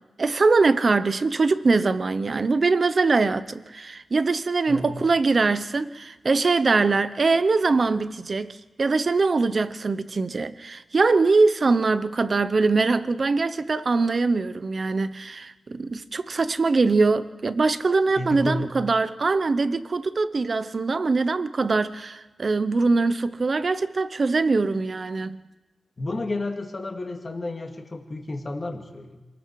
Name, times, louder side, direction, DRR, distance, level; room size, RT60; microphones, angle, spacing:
voice 1, 0.2-25.4, right 3 dB, 35° right, 0.8 m, -22 dB
voice 2, 4.7-5.0 18.1-18.8 26.0-29.2, left 2 dB, 25° left, 2.1 m, -31 dB
27.5 x 20.0 x 4.8 m
wide cardioid pair, 170°, 0 cm